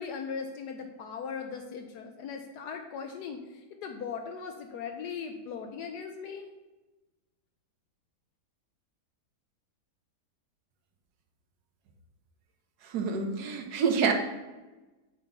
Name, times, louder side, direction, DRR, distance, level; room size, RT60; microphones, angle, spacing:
voice 1, 0.0-3.4 3.7-6.5, left 6 dB, 80° left, 4 dB, 1.2 m, -38 dB
voice 2, 12.9-14.1, right 6 dB, 75° right, 4 dB, 1.2 m, -27 dB
7.8 x 2.9 x 5.1 m, 1.1 s
omnidirectional pair, 1.8 m